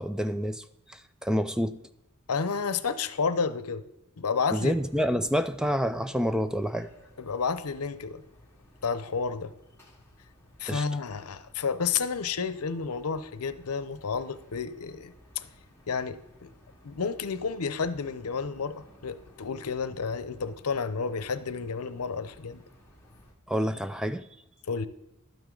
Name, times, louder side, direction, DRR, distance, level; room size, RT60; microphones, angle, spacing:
voice 1, 0.0-1.8 4.5-6.9 10.7-10.8 23.5-24.3, equal, 5° right, 11 dB, 0.3 m, -28 dB
voice 2, 2.3-3.8 4.2-4.7 7.2-8.2 8.8-9.5 10.6-15.5 15.9-16.5 16.8-22.6 24.7-24.9, left 5 dB, 80° left, 13 dB, 0.7 m, -31 dB
sound 1, 4.6-23.3, equal, 10° left, 2.2 m, -57 dB
12.0 x 9.2 x 3.8 m, 0.90 s
head